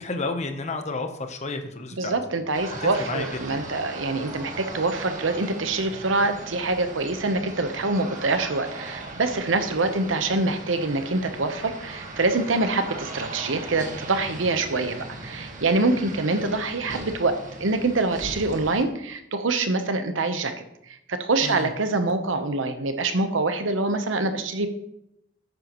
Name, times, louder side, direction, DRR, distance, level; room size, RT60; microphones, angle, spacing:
voice 1, 0.0-2.1 2.8-3.6 21.4-21.7, left 3 dB, 35° left, 6 dB, 0.9 m, -31 dB
voice 2, 2.0-15.0 15.2-20.5 20.9-24.7, right 3 dB, 85° right, 8 dB, 1.0 m, -25 dB
sound 1, 2.5-18.8, right 2 dB, 45° right, 1.6 m, -38 dB
13.5 x 9.0 x 3.1 m, 0.83 s
head